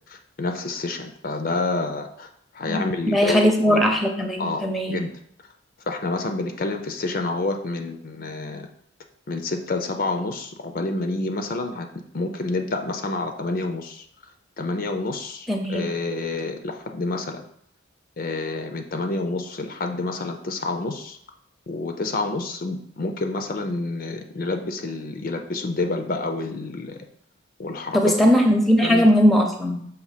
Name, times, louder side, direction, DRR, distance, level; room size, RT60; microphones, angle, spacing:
voice 1, 0.1-2.3 2.5-3.9 4.4-5.1 5.9-8.7 9.3-11.9 12.1-14.1 14.6-17.4 18.2-21.2 21.7-27.0 27.6-28.1 28.8-29.1, left 2 dB, 45° left, 5 dB, 0.5 m, -28 dB
voice 2, 3.1-5.0 15.5-15.9 27.9-29.9, equal, ahead, 3 dB, 0.6 m, -19 dB
6.4 x 2.9 x 5.0 m, 0.68 s
head